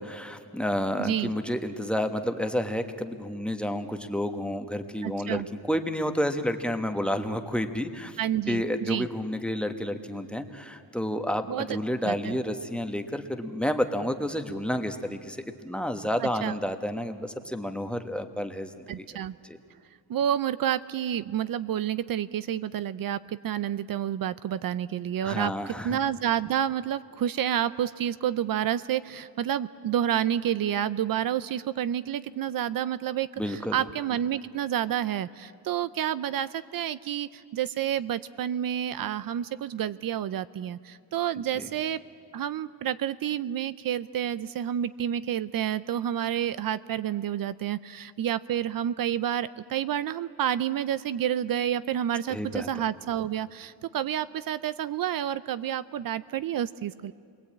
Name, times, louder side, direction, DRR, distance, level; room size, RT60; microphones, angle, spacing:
voice 1, 0.0-5.4 5.7-8.2 8.5-19.1 19.4-19.6 25.2-26.0 33.4-33.8 41.5-41.7 52.3-52.7, equal, 5° left, 6 dB, 1.1 m, -30 dB
voice 2, 1.0-1.3 5.0-5.5 8.2-9.1 11.5-12.4 16.2-16.5 18.9-19.4 20.1-25.5 25.8-42.0 42.3-57.1, right 10 dB, 65° right, 15 dB, 0.6 m, -29 dB
29.5 x 22.0 x 8.6 m, 2.2 s
wide cardioid pair, 160°, 38 cm